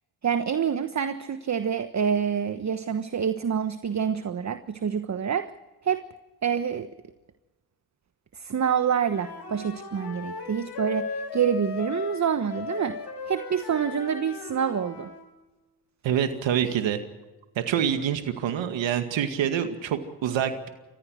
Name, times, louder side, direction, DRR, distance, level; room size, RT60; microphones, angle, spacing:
voice 1, 0.2-5.5 5.8-6.0 6.4-6.9 8.3-13.0 13.3-15.1, right 7 dB, 35° right, 10 dB, 1.2 m, -27 dB
Wind instrument woodwind instrument, 9.0-15.3, left 4 dB, 55° left, 5.1 m, -37 dB
voice 2, 16.0-17.0 17.6-20.7, right 9 dB, 65° right, 7 dB, 2.1 m, -26 dB
29.0 x 15.0 x 6.4 m, 1.1 s
supercardioid pair, 60°, 48 cm